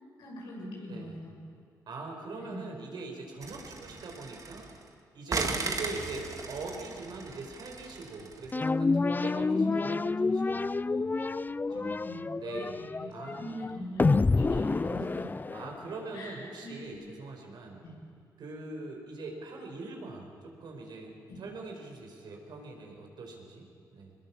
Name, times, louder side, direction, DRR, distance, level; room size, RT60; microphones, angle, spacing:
voice 1, 0.2-1.3 2.4-2.8 5.6-5.7 9.5-9.9 11.7-12.4 12.8-13.0 13.3-15.3 16.1-16.9 17.8-17.9 21.3-21.4, equal, 90° left, -2 dB, 6.8 m, -42 dB
voice 2, 0.9-1.2 1.9-4.7 5.1-11.2 11.8-12.1 12.4-12.8 13.1-13.7 15.5-17.8 18.4-24.1, right 3 dB, 70° right, 2 dB, 4.7 m, -42 dB
sound 1, 3.4-4.9 5.3-8.6, right 3 dB, 45° right, 2.4 m, -37 dB
sound 2, 8.5-16.0, left 3 dB, 25° left, 0.4 m, -28 dB
23.0 x 20.0 x 7.3 m, 2.5 s
cardioid pair, 65°, 8 cm